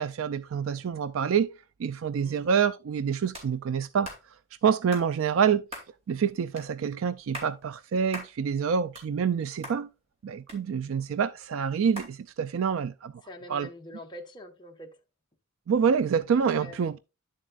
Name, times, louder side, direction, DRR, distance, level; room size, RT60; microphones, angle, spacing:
voice 1, 0.0-1.5 1.8-4.1 4.6-5.6 6.1-9.9 10.2-13.1 13.5-13.7 15.7-17.0, right 7 dB, 65° right, 0.4 m, -27 dB
sound 1, 3.3-3.5 4.0-4.2 4.9-5.1 5.7-5.9 6.6-6.7 7.2-7.5 8.1-8.3 8.7-9.4 9.6-9.8 10.5-11.1 12.0-12.1, equal, 30° right, 2.7 m, -40 dB
voice 2, 13.2-14.9 16.5-16.8, left 1 dB, 20° left, 1.2 m, -45 dB
10.5 x 7.4 x 2.4 m
head